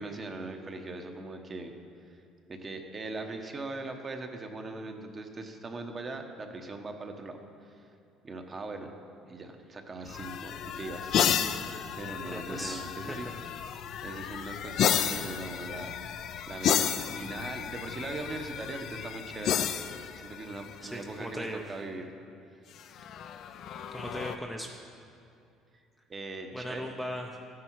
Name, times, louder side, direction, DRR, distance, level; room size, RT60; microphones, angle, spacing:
voice 1, 0.0-1.7 2.1-2.2 2.5-7.4 7.7-7.9 8.2-8.9 9.3-11.6 12.0-13.3 14.0-16.9 17.1-19.6 20.2-22.0 26.1-26.9, right 3 dB, 25° right, 5 dB, 1.0 m, -40 dB
sound 1, 10.1-21.2 22.8-24.4, left 8 dB, 55° left, 0.5 m, -32 dB
voice 2, 12.2-13.2 20.8-21.6 23.9-24.7 26.5-27.5, equal, ahead, 1 dB, 0.6 m, -38 dB
13.5 x 9.5 x 4.6 m, 2.5 s
cardioid pair, 135°, 0 cm